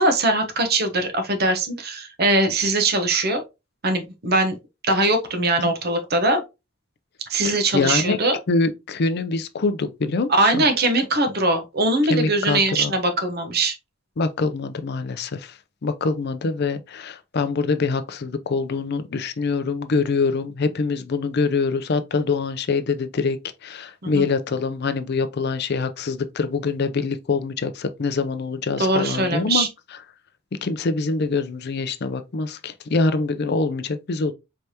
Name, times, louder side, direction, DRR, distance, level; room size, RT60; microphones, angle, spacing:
voice 1, 0.0-3.4 3.8-4.6 4.8-6.4 7.3-8.4 10.3-13.8 24.0-24.2 28.8-29.7, right 2 dB, 50° right, 0.9 m, -21 dB
voice 2, 7.4-8.2 8.5-10.7 12.1-12.9 14.2-29.7 30.6-34.3, left 4 dB, 50° left, 0.5 m, -24 dB
4.8 x 3.3 x 2.8 m
head